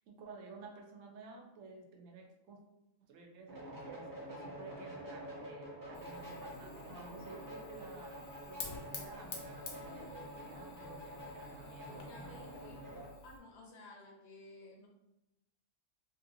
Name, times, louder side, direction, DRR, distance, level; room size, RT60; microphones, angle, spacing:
voice 1, 0.1-2.6 3.0-12.4, right 4 dB, 80° right, 2 dB, 0.9 m, -53 dB
sound 1, 3.5-13.1, equal, 20° right, 0.6 m, -47 dB
Fire, 5.9-13.4, left 4 dB, 85° left, 1.0 m, -51 dB
voice 2, 11.7-12.8 13.2-14.9, left 2 dB, 60° left, -1 dB, 0.8 m, -55 dB
3.0 x 2.6 x 2.6 m, 0.90 s
omnidirectional pair, 1.3 m